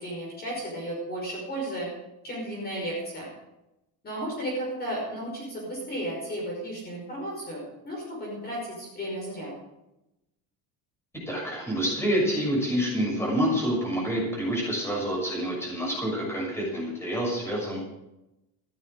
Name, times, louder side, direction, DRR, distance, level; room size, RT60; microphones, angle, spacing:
voice 1, 0.0-1.9 2.2-3.3 4.0-9.5, right 1 dB, 25° left, -3 dB, 5.5 m, -34 dB
voice 2, 11.3-17.8, equal, 5° left, -3 dB, 6.6 m, -27 dB
15.5 x 13.5 x 5.0 m, 0.92 s
cardioid pair, 160°, 37 cm